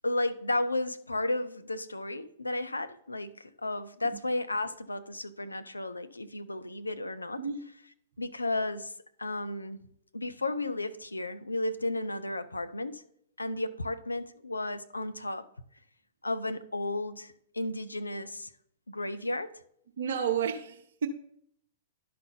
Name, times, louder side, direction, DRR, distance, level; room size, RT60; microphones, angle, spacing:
voice 1, 0.0-7.4 8.2-8.9 9.2-9.8 10.1-13.0 13.4-15.5 16.2-18.5 18.9-19.6, left 2 dB, 85° left, 0.5 m, -33 dB
voice 2, 20.0-21.1, right 7 dB, 65° right, 0.6 m, -31 dB
11.5 x 4.2 x 3.9 m
figure-of-eight pair, 105°, 0 cm